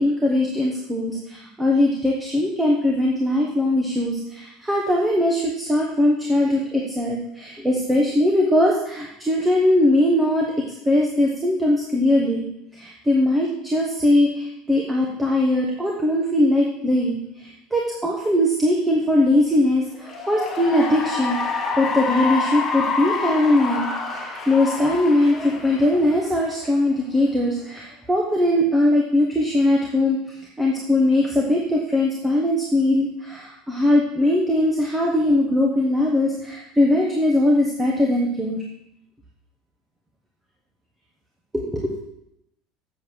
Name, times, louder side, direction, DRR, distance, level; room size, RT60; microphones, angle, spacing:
voice 1, 0.0-10.5 10.9-12.5 12.7-30.2 30.6-38.6 41.5-41.9, left 1 dB, 5° right, -2 dB, 1.0 m, -20 dB
Cheering / Applause, 19.9-26.6, left 4 dB, 15° left, 1.3 m, -27 dB
7.5 x 7.5 x 6.2 m, 0.80 s
cardioid pair, 175°, 0 cm